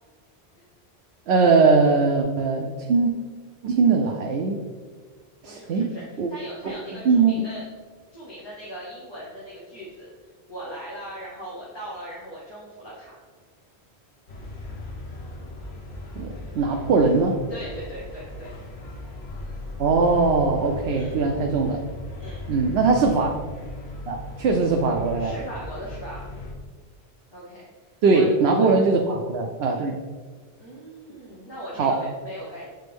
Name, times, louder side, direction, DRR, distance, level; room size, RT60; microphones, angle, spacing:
voice 1, 1.3-3.1 3.6-4.6 5.4-6.3 6.6-6.8 7.0-7.5 16.2-17.4 19.8-21.8 22.5-23.3 24.1-25.3 28.0-30.0 31.8-32.0, right 4 dB, 75° right, 2 dB, 0.8 m, -21 dB
voice 2, 5.4-6.0 6.3-7.6 8.1-10.1 10.5-13.1 17.5-18.6 20.9-21.2 22.2-22.4 25.2-26.2 27.3-27.7 28.1-28.2 28.5-28.7 30.6-32.7, equal, 25° left, -7 dB, 1.0 m, -39 dB
sound 1, 14.3-26.5, left 1 dB, 75° left, 1.2 m, -38 dB
7.9 x 4.1 x 3.5 m, 1.5 s
omnidirectional pair, 1.1 m